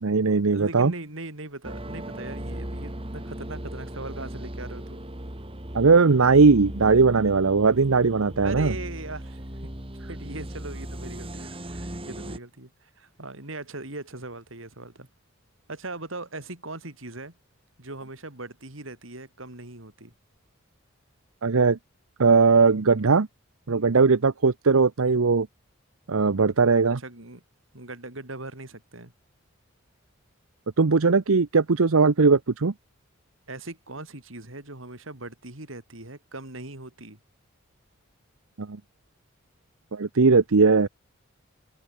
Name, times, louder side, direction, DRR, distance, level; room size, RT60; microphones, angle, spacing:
voice 1, 0.0-0.9 5.7-8.7 21.4-21.8 22.2-23.3 23.7-25.5 26.1-27.0 30.8-32.7 38.6-38.8 39.9-40.9, right 4 dB, 90° right, 0.8 m, -19 dB
voice 2, 0.5-5.0 8.4-9.4 10.1-15.1 15.7-17.3 17.8-20.1 26.9-27.4 27.7-29.1 33.5-37.2, right 2 dB, 70° right, 4.1 m, -39 dB
sound 1, 1.6-12.4, right 1 dB, 25° right, 2.6 m, -37 dB
head